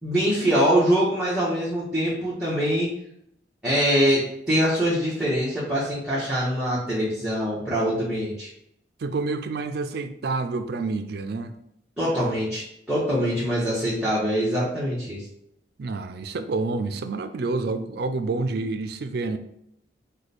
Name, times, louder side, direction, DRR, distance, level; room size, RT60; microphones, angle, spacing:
voice 1, 0.0-2.9 3.6-4.2 4.5-8.5 12.0-12.6 12.9-15.2, equal, 5° right, -9 dB, 1.0 m, -23 dB
voice 2, 9.0-11.5 15.8-19.4, right 3 dB, 60° right, 10 dB, 0.4 m, -28 dB
4.9 x 2.2 x 4.1 m, 0.74 s
head